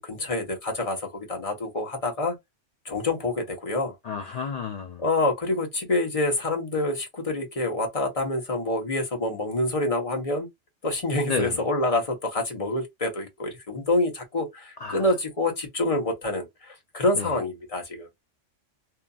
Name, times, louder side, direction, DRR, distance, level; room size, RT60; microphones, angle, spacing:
voice 1, 0.0-2.3 2.8-3.9 4.2-4.4 5.0-10.5 10.8-18.2, left 2 dB, 30° left, 0.9 m, -27 dB
voice 2, 4.0-5.0 11.3-11.6 14.8-15.0 17.1-17.3, left 5 dB, 85° left, 0.3 m, -31 dB
2.8 x 2.5 x 2.3 m
omnidirectional pair, 1.3 m